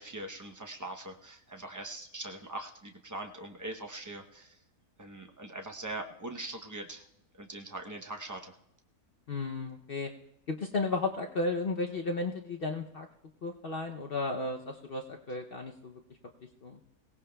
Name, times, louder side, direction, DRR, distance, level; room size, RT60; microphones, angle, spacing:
voice 1, 0.0-4.6 5.0-7.0 7.3-8.6, right 2 dB, 25° right, 3 dB, 0.3 m, -42 dB
voice 2, 9.3-10.1 10.5-13.1 13.4-16.0 16.6-16.8, left 3 dB, 50° left, 2 dB, 0.7 m, -34 dB
22.0 x 17.5 x 2.2 m, 0.83 s
omnidirectional pair, 1.6 m